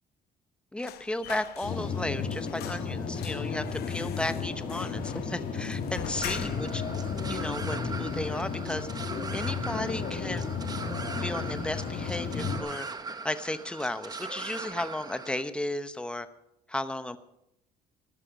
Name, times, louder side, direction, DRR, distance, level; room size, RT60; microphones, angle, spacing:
voice 1, 0.7-6.8 7.3-8.9 9.3-10.5 11.2-12.9 13.2-16.3 16.7-17.2, left 1 dB, 5° left, 11 dB, 0.9 m, -34 dB
sound 1, 0.8-2.0 2.3-6.8 7.2-7.3 7.6-8.4 8.7-8.9 9.3-9.9 10.2-10.4, left 12 dB, 70° left, 0.8 m, -44 dB
sound 2, 1.6-12.6, left 5 dB, 55° left, 2.1 m, -33 dB
sound 3, 6.2-15.4, right 4 dB, 25° right, 1.0 m, -40 dB
14.5 x 11.5 x 5.1 m, 0.80 s
cardioid pair, 110°, 17 cm